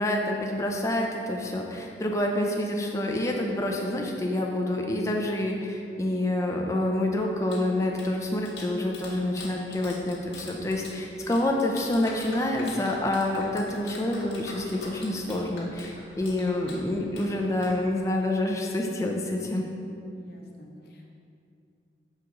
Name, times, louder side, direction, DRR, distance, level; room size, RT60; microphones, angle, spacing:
voice 1, 0.0-19.7, left 1 dB, 15° left, 0 dB, 0.5 m, -27 dB
Clapping, 7.2-18.3, left 2 dB, 85° left, 1.3 m, -44 dB
voice 2, 20.1-21.1, left 1 dB, 60° left, 0 dB, 0.8 m, -47 dB
6.6 x 4.7 x 3.7 m, 2.5 s
head